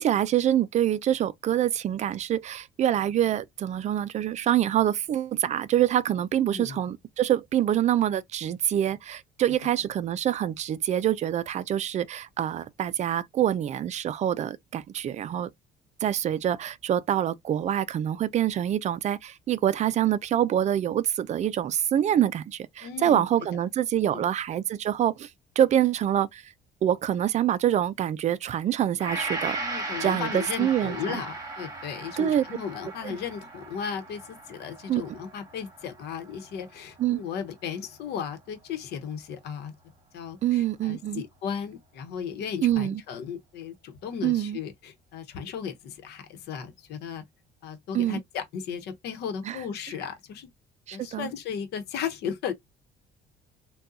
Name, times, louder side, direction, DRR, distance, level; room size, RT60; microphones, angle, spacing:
voice 1, 0.0-15.5 16.0-25.3 25.6-26.5 26.8-29.6 30.0-31.2 32.2-32.4 33.0-33.2 34.9-35.0 37.0-37.2 40.4-41.2 42.6-43.0 44.2-44.6 47.9-48.2 49.4-49.6 50.9-51.3, right 11 dB, 45° right, 0.4 m, -25 dB
voice 2, 22.8-23.2 24.1-24.3 29.6-39.7 40.1-47.2 47.6-50.5 50.9-52.5, left 7 dB, 75° left, 0.9 m, -35 dB
Gong, 29.0-37.3 37.8-37.9, right 2 dB, 20° right, 1.4 m, -37 dB
3.7 x 2.3 x 2.7 m
cardioid pair, 110°, 17 cm